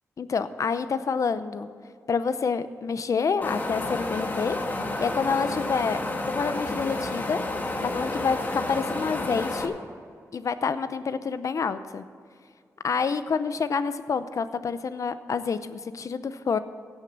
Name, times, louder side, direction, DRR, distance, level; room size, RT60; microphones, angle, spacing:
voice 1, 0.2-1.7 2.1-4.6 5.0-7.4 7.8-9.7 10.3-12.0 12.8-16.6, left 5 dB, 60° left, 12 dB, 0.7 m, -28 dB
Wind, 3.4-9.6, left 2 dB, 30° left, 1.5 m, -30 dB
16.5 x 6.6 x 7.3 m, 2.2 s
cardioid pair, 80°, 6 cm